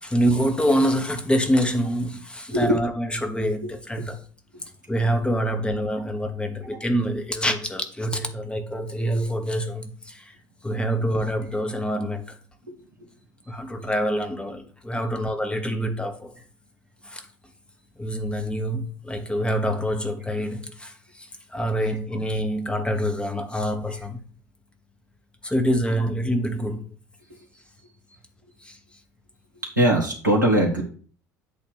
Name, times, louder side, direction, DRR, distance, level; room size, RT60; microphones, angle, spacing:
voice 1, 0.0-4.2 4.9-10.4 10.6-12.4 13.5-16.3 17.0-17.3 18.0-24.3 25.4-26.9 28.6-28.8, equal, 10° left, 1.2 m, -26 dB
voice 2, 2.5-2.8 3.6-3.7 4.0-4.1 12.7-12.8 13.0-13.1 27.3-27.4 29.8-30.8, right 1 dB, 90° right, 1.6 m, -21 dB
8.3 x 2.9 x 6.3 m
figure-of-eight pair, 60°, 10 cm